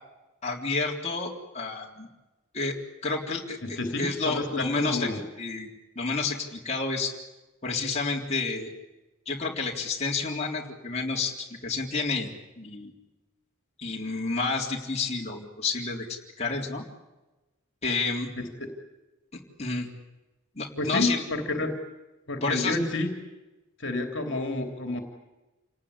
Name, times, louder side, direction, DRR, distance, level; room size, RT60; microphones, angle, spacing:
voice 1, 0.4-2.1 2.5-2.8 3.0-3.6 4.0-5.1 5.4-5.7 6.0-7.1 7.6-8.7 9.3-12.3 12.6-12.9 13.8-16.8 17.8-18.3 19.3-19.9 20.6-21.2 22.4-22.8, left 3 dB, 30° left, -2 dB, 3.7 m, -30 dB
voice 2, 3.6-5.2 18.4-18.7 20.8-21.8 22.3-23.1 23.8-25.0, left 2 dB, 55° left, 4 dB, 3.1 m, -29 dB
28.5 x 19.0 x 10.0 m, 1.1 s
head